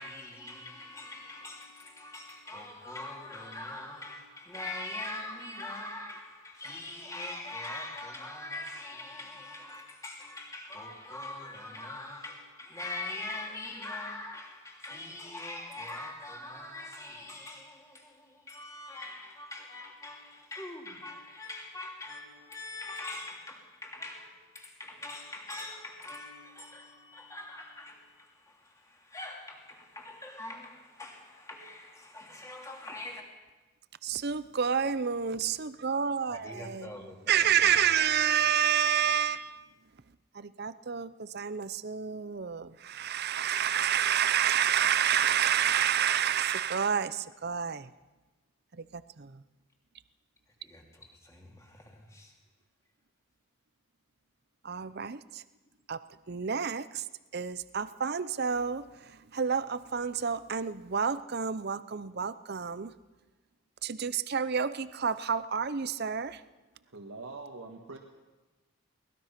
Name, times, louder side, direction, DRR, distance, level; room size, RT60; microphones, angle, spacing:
voice 1, 0.0-33.2 36.3-38.2 50.6-52.3, left 2 dB, 15° left, 2.9 m, -43 dB
voice 2, 34.0-37.0 37.3-39.6 40.3-47.9 48.8-49.4 54.6-55.4 55.9-56.0 56.3-57.0 57.3-62.9 63.8-66.4, right 8 dB, 45° right, 0.6 m, -29 dB
voice 3, 66.9-68.0, right 3 dB, 70° right, 1.8 m, -43 dB
22.5 x 19.5 x 5.9 m
head